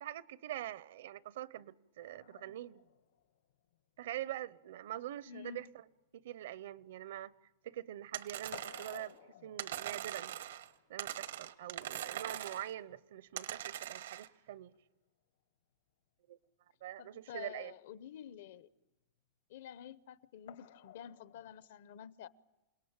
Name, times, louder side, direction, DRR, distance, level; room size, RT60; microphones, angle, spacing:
voice 1, 0.0-2.8 4.0-5.8 6.1-7.3 7.6-9.2 9.4-10.3 10.9-14.7 16.3-16.4 16.8-17.7, right 12 dB, 70° right, 0.8 m, -44 dB
sound 1, 2.0-7.7 8.0-15.0 16.4-16.5 16.9-17.0 20.5-21.7, left 11 dB, 85° left, 2.2 m, -59 dB
voice 2, 5.3-5.7 17.0-18.7 19.5-22.3, left 9 dB, 65° left, 0.8 m, -49 dB
Buttons Fall on table, 8.1-9.1 9.6-10.7 11.0-12.7 13.4-14.3, right 11 dB, 90° right, 1.2 m, -42 dB
28.5 x 18.0 x 8.8 m
supercardioid pair, 165°, 0 cm